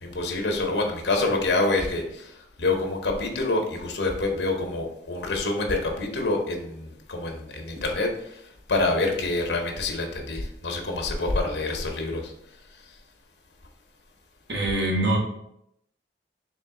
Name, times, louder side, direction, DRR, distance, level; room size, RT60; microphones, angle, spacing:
voice 1, 0.0-12.3 12.7-13.0, left 2 dB, 75° left, 2 dB, 0.8 m, -27 dB
voice 2, 14.5-15.2, right 1 dB, 65° right, -2 dB, 1.2 m, -24 dB
3.8 x 3.0 x 3.6 m, 0.76 s
head